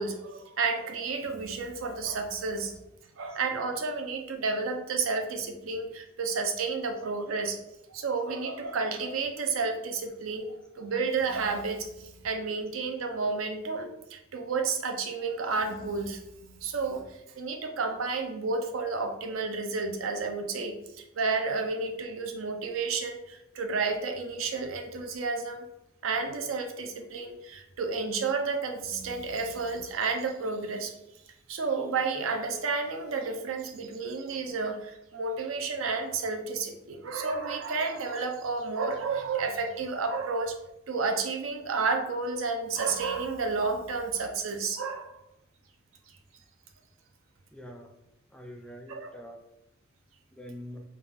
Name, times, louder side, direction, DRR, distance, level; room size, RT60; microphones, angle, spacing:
voice 1, 0.0-2.8 3.2-7.6 7.9-25.7 26.0-30.9 31.5-40.6 40.9-45.2 48.9-49.1, right 4 dB, 85° right, 5 dB, 0.5 m, -31 dB
voice 2, 47.5-47.9 48.3-49.4 50.3-50.8, equal, 5° left, 2 dB, 0.3 m, -44 dB
3.4 x 2.3 x 3.4 m, 0.87 s
head